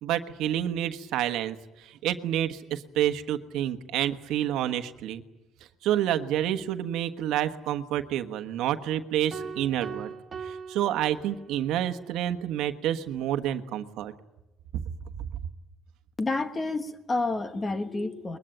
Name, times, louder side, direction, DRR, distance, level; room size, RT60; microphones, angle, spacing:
voice 1, 0.0-5.2 5.8-10.1 10.4-14.1, right 11 dB, 75° right, 9 dB, 1.3 m, -29 dB
sound 1, 9.3-11.8, right 6 dB, 30° right, 1.4 m, -40 dB
voice 2, 16.2-18.4, left 2 dB, 20° left, 9 dB, 1.3 m, -29 dB
22.0 x 21.5 x 9.1 m, 1.0 s
cardioid pair, 155°, 0 cm